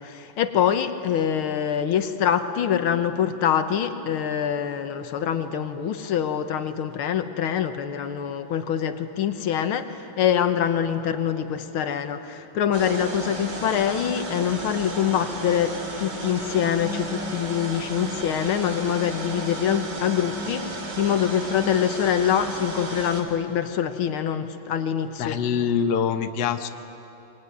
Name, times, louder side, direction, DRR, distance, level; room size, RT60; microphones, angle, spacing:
voice 1, 0.0-25.4, left 9 dB, 85° left, 8 dB, 1.9 m, -25 dB
sound 1, 12.7-23.2, right 1 dB, 55° right, 3.1 m, -33 dB
voice 2, 25.2-26.7, left 7 dB, 60° left, 8 dB, 1.4 m, -24 dB
23.0 x 22.0 x 9.6 m, 2.9 s
omnidirectional pair, 2.3 m